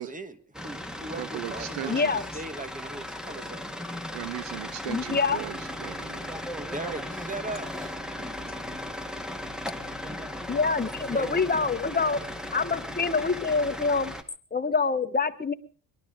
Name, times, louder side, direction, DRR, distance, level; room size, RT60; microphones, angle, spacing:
voice 1, 0.0-3.8 6.7-8.5 11.1-11.5, right 2 dB, 20° right, 1.8 m, -39 dB
sound 1, 0.5-14.2, left 1 dB, ahead, 1.9 m, -37 dB
voice 2, 1.2-2.1 4.1-6.3, right 15 dB, 90° right, 1.0 m, -37 dB
voice 3, 1.9-2.2 4.9-5.4 10.5-12.2 12.5-14.1 14.5-15.5, left 4 dB, 20° left, 1.6 m, -26 dB
22.5 x 12.0 x 5.1 m
cardioid pair, 85°, 44 cm